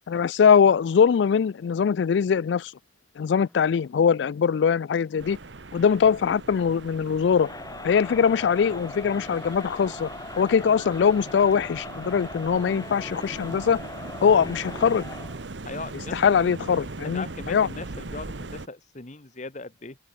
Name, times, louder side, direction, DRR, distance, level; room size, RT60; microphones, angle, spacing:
voice 1, 0.1-2.7 3.2-5.4 5.7-7.5 7.8-10.1 10.4-13.8 14.2-15.0 16.1-17.7, left 6 dB, 70° left, 0.3 m, -22 dB
Drum, 3.3-11.6, equal, 5° left, 3.7 m, -59 dB
sound 1, 5.2-18.7, right 2 dB, 75° right, 1.2 m, -40 dB
Crowd, 7.3-15.4, left 2 dB, 20° left, 2.7 m, -40 dB
voice 2, 15.6-16.2 16.7-20.0, left 3 dB, 40° left, 1.4 m, -39 dB
head